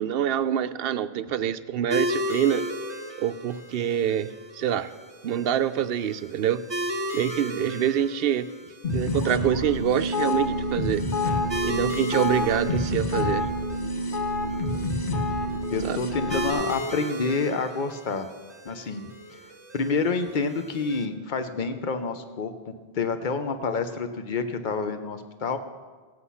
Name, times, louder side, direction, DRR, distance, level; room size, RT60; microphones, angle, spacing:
voice 1, 0.0-2.7 3.2-4.9 5.2-6.6 7.1-8.5 8.9-11.0 11.6-13.5 15.8-16.0, right 9 dB, 65° right, 12 dB, 0.8 m, -26 dB
sound 1, 1.9-21.0, equal, 25° right, 1.4 m, -36 dB
sound 2, 8.8-16.5, left 1 dB, 80° left, 1.7 m, -27 dB
voice 2, 15.7-18.3 18.6-19.0 19.3-19.4 19.7-22.5 22.9-25.6, left 4 dB, 50° left, 9 dB, 1.0 m, -28 dB
16.5 x 8.3 x 5.6 m, 1.4 s
omnidirectional pair, 1.1 m